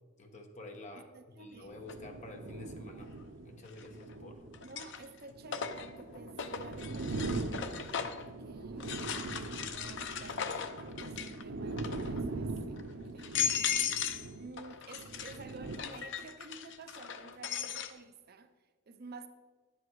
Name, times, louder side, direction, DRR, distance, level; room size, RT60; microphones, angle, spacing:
voice 1, 0.2-1.1 1.4-3.1 3.4-4.4 7.8-8.3, left 2 dB, 35° left, 1.2 m, -49 dB
voice 2, 1.0-1.8 4.6-19.3, right 3 dB, 50° right, 0.6 m, -52 dB
sound 1, 1.5-15.8, right 3 dB, 90° right, 0.7 m, -41 dB
sound 2, 1.9-2.0 3.7-4.1 4.5-8.3 8.8-11.4 11.7-12.2 12.8-12.9 13.2-14.3 14.6-17.9, left 7 dB, 60° left, 0.7 m, -37 dB
10.0 x 8.1 x 4.7 m
head